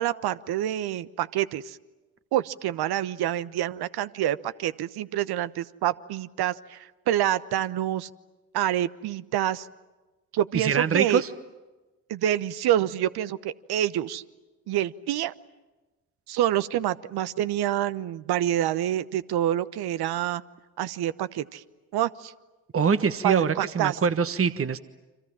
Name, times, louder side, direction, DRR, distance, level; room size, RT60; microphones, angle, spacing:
voice 1, 0.0-1.8 2.3-8.1 8.5-9.7 10.3-11.2 12.1-14.2 14.7-15.3 16.3-20.4 20.8-21.6 21.9-22.3 23.2-24.0, right 12 dB, 65° right, 16 dB, 1.0 m, -27 dB
voice 2, 10.5-11.3 22.7-24.8, right 6 dB, 30° right, 11 dB, 1.3 m, -24 dB
29.5 x 26.0 x 7.5 m, 1.1 s
hypercardioid pair, 45°, 42 cm